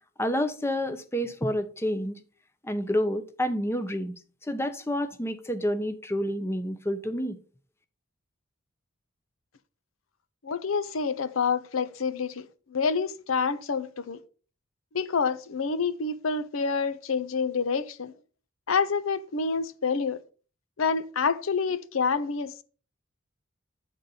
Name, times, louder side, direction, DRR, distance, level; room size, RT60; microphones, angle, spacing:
voice 1, 0.2-2.2 2.6-7.4, equal, 10° left, 0.7 m, -29 dB
voice 2, 10.4-12.5 12.7-14.2 14.9-18.1 18.7-20.2 20.8-22.6, left 5 dB, 80° left, 0.6 m, -27 dB
9.0 x 3.9 x 5.6 m
head